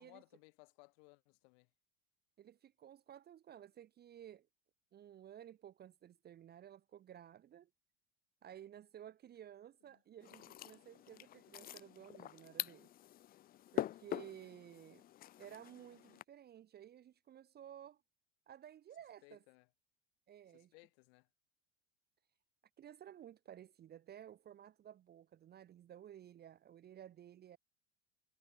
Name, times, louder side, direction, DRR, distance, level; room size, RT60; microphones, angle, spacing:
voice 1, 0.0-1.7 9.9-10.0 19.2-19.7 20.5-21.3, left 32 dB, 55° left, 3.0 m, -63 dB
voice 2, 2.4-4.5 4.9-7.7 8.4-12.9 13.7-15.0 15.4-18.0 18.5-19.4 20.3-20.7 22.8-27.6, right 10 dB, 25° right, 0.8 m, -55 dB
sound 1, 10.2-16.2, left 13 dB, 25° left, 0.5 m, -45 dB
figure-of-eight pair, 70°, 38 cm